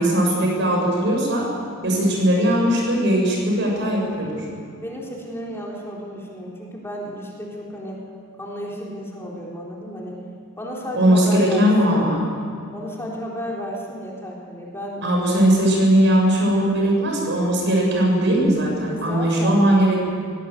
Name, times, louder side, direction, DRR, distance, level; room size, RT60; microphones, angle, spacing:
voice 1, 0.0-1.5 1.8-4.4 10.9-12.2 15.0-20.0, right 1 dB, 60° right, -1 dB, 7.5 m, -19 dB
voice 2, 4.7-8.1 8.4-10.2 10.6-12.1 12.7-15.5 18.9-19.6, equal, 10° left, -3 dB, 3.9 m, -33 dB
23.5 x 18.0 x 8.0 m, 2.4 s
head